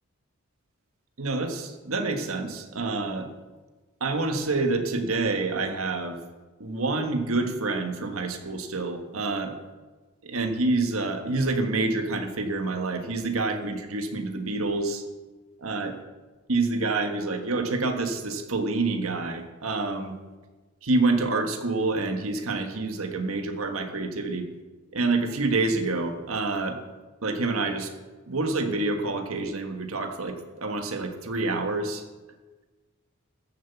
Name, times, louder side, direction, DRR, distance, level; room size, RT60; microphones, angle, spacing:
voice 1, 1.2-3.3 4.0-6.2 6.6-9.5 10.2-15.0 15.6-15.9 16.5-20.1 20.8-24.4 24.9-26.8 27.2-27.9 28.3-32.0, right 3 dB, 85° right, 6 dB, 1.6 m, -27 dB
14.5 x 7.5 x 7.1 m, 1.2 s
head